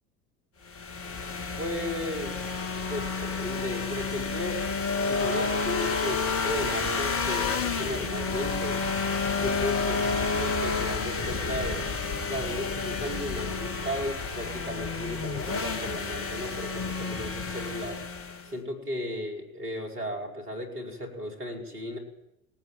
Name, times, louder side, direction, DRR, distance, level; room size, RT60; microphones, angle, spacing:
sound 1, 0.7-18.5, left 4 dB, 30° left, 2.7 m, -30 dB
voice 1, 1.6-2.4 2.9-4.6 5.0-8.8 9.4-11.8 12.3-18.0 18.4-22.0, left 1 dB, 80° right, 3 dB, 5.3 m, -35 dB
20.0 x 18.5 x 9.1 m, 0.86 s
figure-of-eight pair, 75°, 45 cm